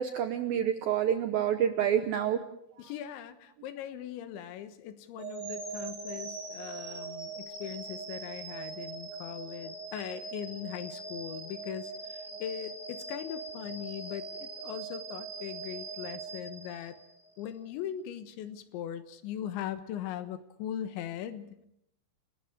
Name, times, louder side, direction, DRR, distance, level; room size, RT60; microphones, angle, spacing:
voice 1, 0.0-2.4, right 9 dB, 80° right, 8 dB, 2.2 m, -28 dB
voice 2, 2.8-17.0 17.4-21.7, left 10 dB, 80° left, 10 dB, 3.5 m, -40 dB
sound 1, 5.2-17.3, right 4 dB, 25° right, 5.0 m, -41 dB
30.0 x 20.0 x 5.0 m, 0.77 s
omnidirectional pair, 5.4 m